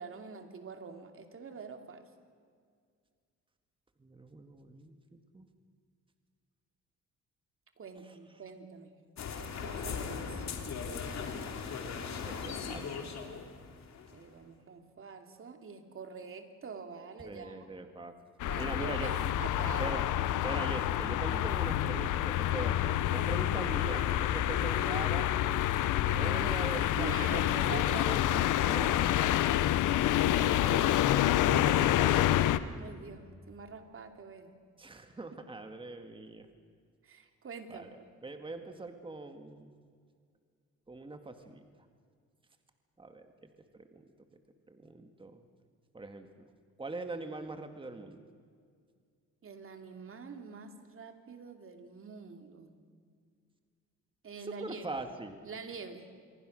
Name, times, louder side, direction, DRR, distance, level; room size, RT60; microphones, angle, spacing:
voice 1, 0.0-2.0 7.8-8.9 9.4-10.4 14.1-17.7 18.4-20.0 23.2-24.1 26.0-28.6 30.4-31.0 32.8-34.5 37.0-38.1 49.4-52.7 54.2-54.9 55.4-56.2, right 5 dB, 45° right, 6 dB, 2.8 m, -45 dB
voice 2, 4.0-5.5 12.2-13.1 17.2-18.1 18.6-19.1 19.8-20.1 20.4-25.3 26.1-29.4 31.1-32.4 34.8-36.5 37.7-37.9 38.2-39.8 40.9-41.6 43.0-43.5 43.7-44.4 44.7-45.4 45.9-46.5 46.8-48.2 54.4-55.4, right 2 dB, 15° right, 7 dB, 1.9 m, -42 dB
sound 1, 9.2-14.3, left 5 dB, 65° left, 2.9 m, -39 dB
sound 2, 18.4-32.6, left 12 dB, 80° left, 0.9 m, -28 dB
26.5 x 23.0 x 6.5 m, 2.1 s
cardioid pair, 90°, 30 cm